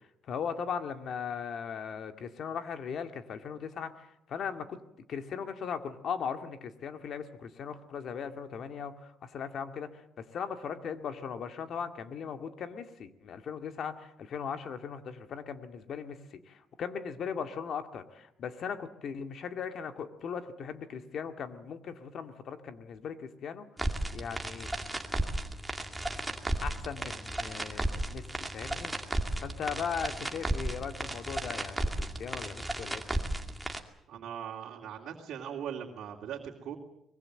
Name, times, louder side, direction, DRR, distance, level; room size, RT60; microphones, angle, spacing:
voice 1, 0.0-4.8 5.1-23.7 24.1-24.7 26.6-28.9 29.4-33.2, left 7 dB, 55° left, 7 dB, 2.1 m, -38 dB
sound 1, 23.8-33.8, right 1 dB, 5° right, 2.3 m, -34 dB
voice 2, 34.1-36.8, right 8 dB, 70° right, -2 dB, 2.8 m, -40 dB
24.0 x 21.5 x 7.8 m, 0.82 s
cardioid pair, 125°, 0 cm